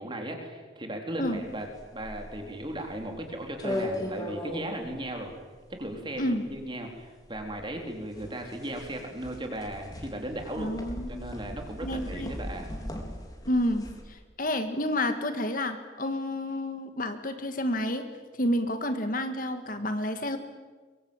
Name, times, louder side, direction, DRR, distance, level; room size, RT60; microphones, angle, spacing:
voice 1, 0.0-1.7 1.9-5.3 5.7-10.7 11.1-12.7, right 1 dB, 25° right, 3 dB, 3.9 m, -36 dB
sound 1, 1.3-14.0, left 1 dB, 20° left, 3.9 m, -39 dB
voice 2, 10.6-11.3 11.8-12.3 13.4-18.0 18.4-20.4, left 1 dB, 45° left, 8 dB, 1.7 m, -30 dB
23.5 x 23.5 x 8.9 m, 1.4 s
head